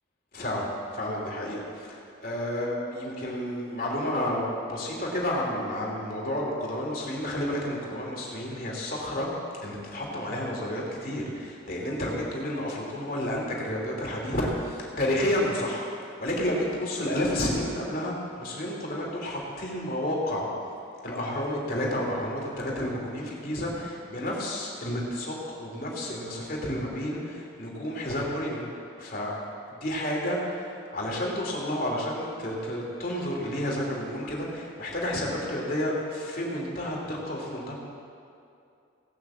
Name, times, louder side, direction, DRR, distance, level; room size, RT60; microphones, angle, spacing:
voice 1, 0.3-9.3 9.6-20.5 21.0-28.7 29.0-29.3 29.7-37.7, left 1 dB, 50° left, -3 dB, 2.8 m, -31 dB
18.0 x 6.2 x 7.4 m, 2.5 s
head